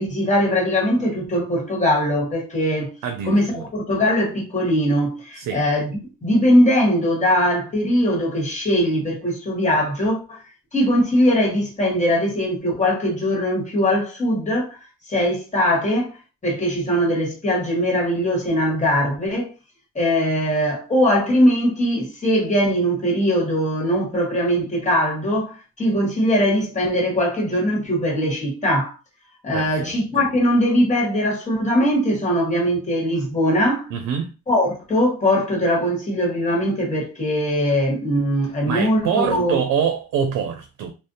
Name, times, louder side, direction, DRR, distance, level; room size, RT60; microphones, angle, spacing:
voice 1, 0.0-3.0 3.2-10.4 10.7-14.8 15.0-16.2 16.4-19.5 19.9-28.9 29.4-33.9 34.5-39.6, equal, 25° left, 1.3 m, -21 dB
voice 2, 3.0-3.7 5.4-5.6 29.5-29.9 33.9-34.3 38.7-40.9, right 7 dB, 85° right, 0.5 m, -25 dB
2.4 x 2.0 x 2.6 m
cardioid pair, 90°, 30 cm